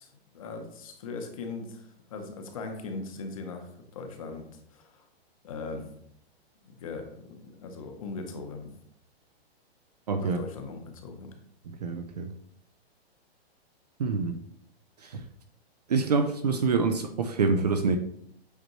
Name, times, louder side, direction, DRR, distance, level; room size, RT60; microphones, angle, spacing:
voice 1, 0.0-5.0 5.4-5.9 6.6-8.7 10.2-11.3, left 3 dB, 35° left, 5 dB, 0.8 m, -40 dB
voice 2, 10.1-10.4 11.7-12.3 14.0-14.4 15.1-15.2 15.9-18.0, right 4 dB, 40° right, 8 dB, 0.4 m, -26 dB
8.0 x 4.3 x 3.0 m, 0.70 s
hypercardioid pair, 175°, 32 cm